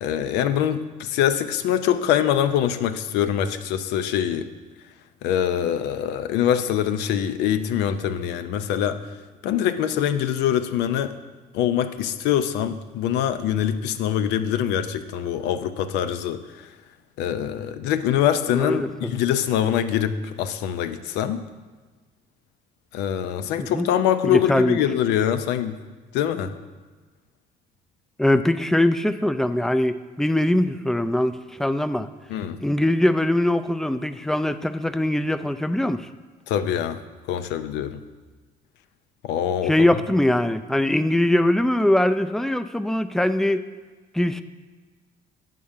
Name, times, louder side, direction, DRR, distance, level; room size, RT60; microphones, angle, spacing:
voice 1, 0.0-4.5 5.2-9.0 9.4-11.2 11.5-16.4 17.2-21.4 22.9-25.8 26.1-26.5 32.3-32.6 36.5-37.0 37.3-38.0 39.2-39.9, left 10 dB, 90° left, 10 dB, 0.6 m, -24 dB
voice 2, 18.5-19.1 23.6-23.9 24.2-24.8 28.2-32.1 32.6-36.0 39.6-43.6 44.1-44.4, left 1 dB, 5° left, 11 dB, 0.3 m, -22 dB
9.3 x 3.8 x 7.1 m, 1.3 s
cardioid pair, 110°, 17 cm